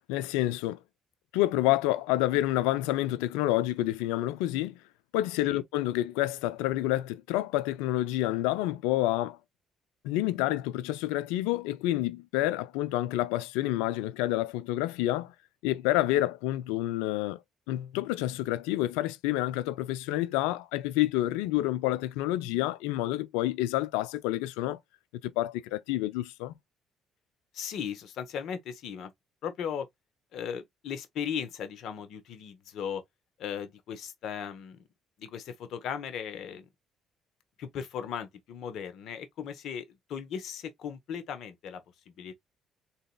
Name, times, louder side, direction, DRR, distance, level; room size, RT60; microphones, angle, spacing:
voice 1, 0.1-0.8 1.3-4.8 5.1-9.4 10.0-15.3 15.6-17.4 17.7-24.8 25.2-26.5, left 15 dB, 85° left, 0.4 m, -28 dB
voice 2, 27.5-29.1 29.4-29.9 30.3-33.0 33.4-34.8 35.2-36.7 37.6-42.4, left 8 dB, 70° left, 0.9 m, -37 dB
3.8 x 2.8 x 2.2 m
supercardioid pair, 65°, 0 cm